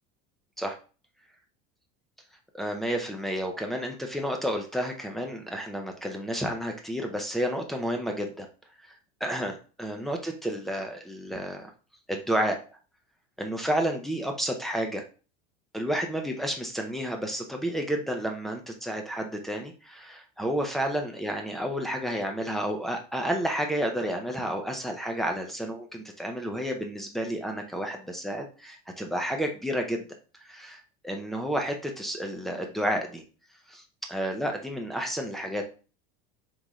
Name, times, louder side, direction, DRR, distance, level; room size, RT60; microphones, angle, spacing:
voice 1, 2.5-8.5 8.8-8.9 9.2-11.7 12.1-12.6 13.4-15.0 15.7-30.0 30.4-33.2 33.7-33.8 34.1-35.6, equal, ahead, 3 dB, 0.5 m, -31 dB
3.9 x 3.7 x 3.1 m, 0.36 s
supercardioid pair, 155°, 20 cm